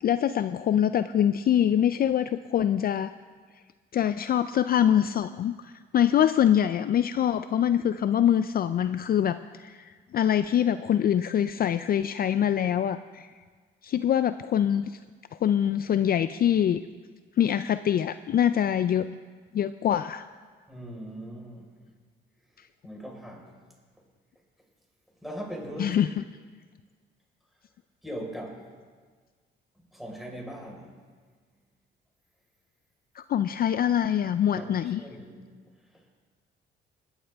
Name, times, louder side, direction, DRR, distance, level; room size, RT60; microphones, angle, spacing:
voice 1, 0.0-3.1 3.9-13.3 13.8-15.0 15.4-16.8 17.4-19.1 19.5-20.3 25.8-26.1 33.2-35.0, left 10 dB, 50° left, 12 dB, 0.4 m, -24 dB
voice 2, 20.7-21.7 22.5-23.6 25.2-26.0 28.0-28.6 29.9-30.9 34.5-35.5 35.8-36.1, equal, ahead, -1 dB, 4.5 m, -40 dB
20.5 x 12.0 x 3.5 m, 1.5 s
cardioid pair, 90°, 20 cm